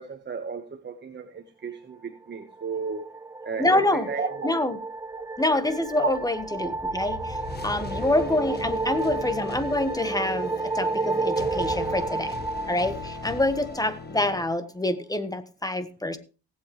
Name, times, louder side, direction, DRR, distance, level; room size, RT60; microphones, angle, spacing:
voice 1, 0.0-3.1 3.4-4.5 6.0-6.1 6.6-6.7 7.4-7.5, right 5 dB, 35° right, 6 dB, 1.4 m, -33 dB
sound 1, 2.5-13.9, right 3 dB, 10° right, 0.5 m, -32 dB
voice 2, 3.6-4.1 4.4-4.7 5.4-7.4 7.6-12.3 12.7-16.2, left 1 dB, 10° left, 11 dB, 1.4 m, -26 dB
sound 2, 5.4-14.5, left 3 dB, 35° left, 1.6 m, -39 dB
18.5 x 7.9 x 3.3 m, 0.33 s
cardioid pair, 90°, 30 cm